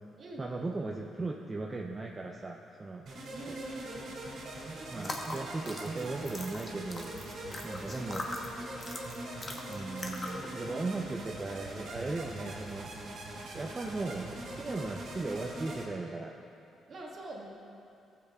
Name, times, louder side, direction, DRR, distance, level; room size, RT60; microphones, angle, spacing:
voice 1, 0.4-3.1 3.4-3.6 4.9-7.1 7.6-8.2 9.7-12.9 13.5-16.3, right 3 dB, 25° right, 0 dB, 0.5 m, -37 dB
sound 1, 3.1-15.9, right 1 dB, 70° right, 1.9 m, -42 dB
voice 2, 3.3-4.2 16.9-17.5, right 2 dB, 50° right, -2 dB, 1.6 m, -44 dB
sound 2, 4.9-10.5, left 2 dB, 30° left, 1.0 m, -42 dB
15.0 x 7.6 x 2.3 m, 2.7 s
cardioid pair, 90°, 0 cm